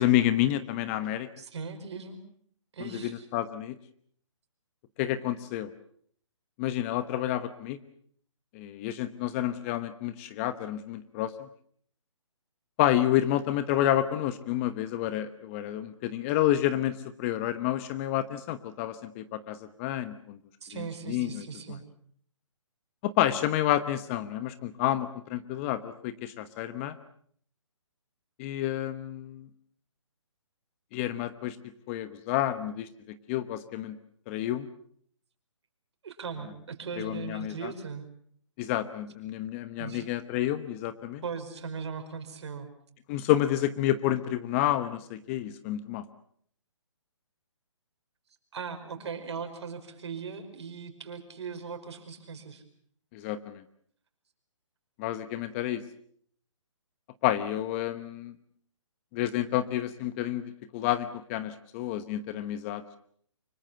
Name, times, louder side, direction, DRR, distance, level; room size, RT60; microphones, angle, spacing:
voice 1, 0.0-1.3 2.8-3.8 5.0-5.7 6.6-7.8 8.5-11.5 12.8-20.4 20.7-21.4 23.0-27.0 28.4-29.5 30.9-31.6 31.9-34.0 34.3-34.7 37.0-37.7 38.6-41.2 43.1-46.0 53.1-53.6 55.0-55.8 57.2-58.3 59.1-60.4 60.7-62.8, left 13 dB, 25° left, 13 dB, 1.1 m, -29 dB
voice 2, 1.4-2.2 2.7-3.3 20.6-21.8 36.0-38.1 39.8-40.1 41.2-42.7 48.5-52.6, right 5 dB, 60° right, 6 dB, 5.0 m, -39 dB
25.0 x 22.5 x 6.9 m, 0.62 s
hypercardioid pair, 145°, 16 cm